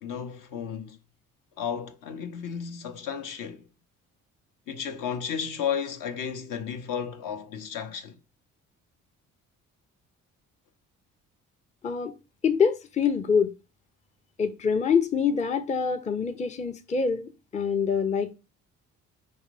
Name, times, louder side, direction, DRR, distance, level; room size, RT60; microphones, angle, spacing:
voice 1, 0.0-1.0 1.6-3.7 4.7-8.2, left 7 dB, 55° left, 0.7 m, -33 dB
voice 2, 11.8-12.1 12.4-13.5 14.4-18.3, left 6 dB, 20° left, 0.5 m, -25 dB
4.7 x 2.6 x 3.2 m
hypercardioid pair, 50°, 39 cm